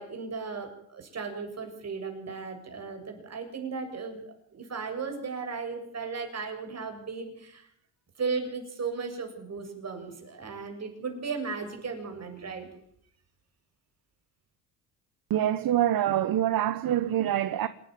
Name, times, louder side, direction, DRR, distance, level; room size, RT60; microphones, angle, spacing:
voice 1, 0.0-4.2 4.5-7.7 8.2-12.7, right 5 dB, 35° right, 7.5 m, -36 dB
voice 2, 15.3-17.7, right 11 dB, 50° right, 1.2 m, -25 dB
27.0 x 11.0 x 9.5 m
cardioid pair, 100°, 44 cm